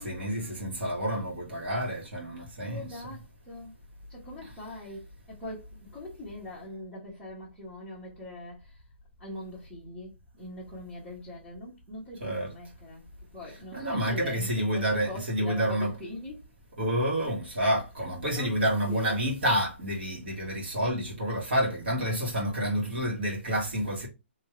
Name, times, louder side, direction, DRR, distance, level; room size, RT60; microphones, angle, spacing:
voice 1, 0.0-2.9 12.2-12.5 13.7-15.9 16.8-24.1, equal, 55° right, 1.7 m, -29 dB
voice 2, 2.6-3.7 4.1-8.8 9.2-13.0 13.3-16.4 18.3-19.2 22.0-22.2 22.4-22.6, left 1 dB, ahead, 0.9 m, -42 dB
3.5 x 2.9 x 3.1 m
hypercardioid pair, 175°, 7 cm